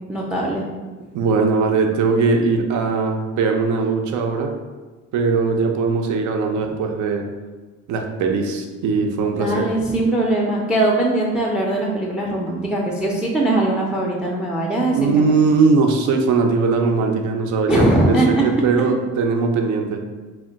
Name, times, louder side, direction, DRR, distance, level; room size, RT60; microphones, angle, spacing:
voice 1, 0.1-0.7 6.6-6.7 9.3-15.3 17.7-18.5, right 1 dB, 5° right, -2 dB, 0.4 m, -20 dB
voice 2, 1.1-4.6 5.1-7.3 7.9-9.7 14.9-20.1, right 4 dB, 75° right, 4 dB, 0.5 m, -20 dB
2.2 x 2.1 x 3.7 m, 1.3 s
cardioid pair, 90°, 30 cm